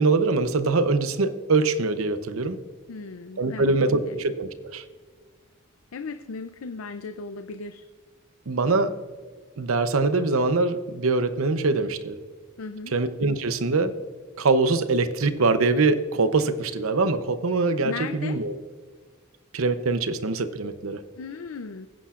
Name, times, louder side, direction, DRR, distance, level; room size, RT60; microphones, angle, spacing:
voice 1, 0.0-2.6 3.4-4.8 8.5-8.9 9.6-12.2 12.9-13.9 14.4-18.5 19.5-21.0, right 3 dB, 85° right, 11 dB, 0.7 m, -23 dB
voice 2, 2.9-4.2 5.9-7.8 12.6-12.9 17.8-18.4 21.2-21.9, left 4 dB, 85° left, 9 dB, 0.5 m, -36 dB
20.0 x 10.0 x 2.5 m, 1.5 s
head